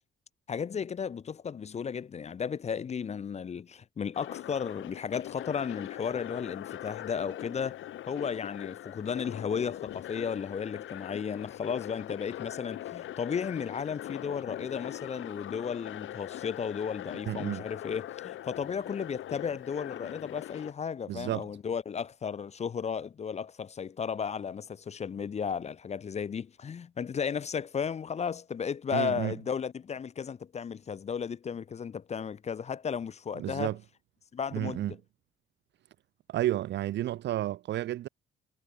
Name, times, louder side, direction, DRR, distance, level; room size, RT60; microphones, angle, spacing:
voice 1, 0.5-7.8 8.1-33.7 34.3-35.0, left 6 dB, 35° left, 0.5 m, -34 dB
sound 1, 4.1-20.7, left 13 dB, 75° left, 2.1 m, -42 dB
voice 2, 17.3-17.6 21.1-21.5 28.9-29.3 33.4-33.8 34.5-34.9 36.3-38.1, right 14 dB, 65° right, 0.4 m, -31 dB
cardioid pair, 90°, 20 cm